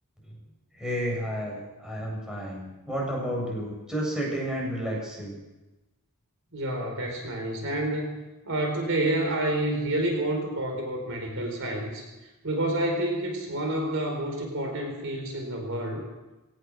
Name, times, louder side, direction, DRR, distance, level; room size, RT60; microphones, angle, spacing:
voice 1, 0.7-5.4, equal, 5° right, -3 dB, 7.9 m, -31 dB
voice 2, 6.5-12.0 12.4-16.0, right 1 dB, 60° right, 3 dB, 4.7 m, -29 dB
21.5 x 18.5 x 6.5 m, 1.1 s
head